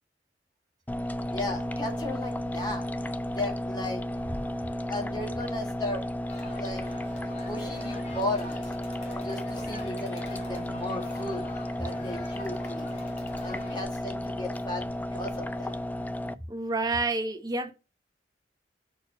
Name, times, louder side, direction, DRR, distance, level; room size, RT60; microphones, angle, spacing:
sound 1, 0.9-16.3, left 1 dB, 10° left, 0.3 m, -33 dB
voice 1, 1.3-2.9 3.3-4.0 4.9-6.0 6.6-6.9 7.5-8.6 9.2-11.4 11.8-12.9 13.4-15.8, left 2 dB, 25° left, 1.9 m, -35 dB
Crowd, 6.3-13.9, left 1 dB, 40° left, 2.7 m, -45 dB
voice 2, 16.5-17.7, right 3 dB, 20° right, 0.9 m, -29 dB
6.4 x 4.4 x 4.8 m
head